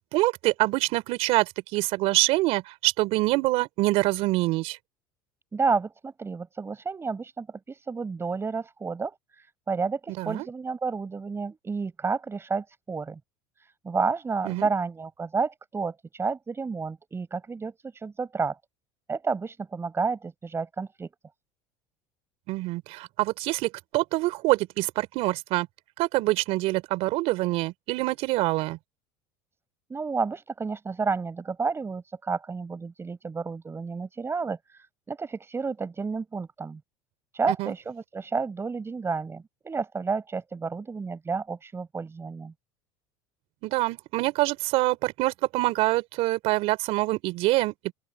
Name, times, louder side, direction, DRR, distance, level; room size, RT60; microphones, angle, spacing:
voice 1, 0.0-4.8 10.2-10.4 14.4-14.6 22.5-25.7 26.0-28.8 37.5-37.7 43.6-47.9, right 19 dB, 65° right, 3.9 m, -25 dB
voice 2, 5.5-13.2 13.6-18.6 19.1-21.1 29.9-36.8 37.3-42.5, right 4 dB, 20° right, 5.8 m, -31 dB
open air
supercardioid pair, 95°, 11 cm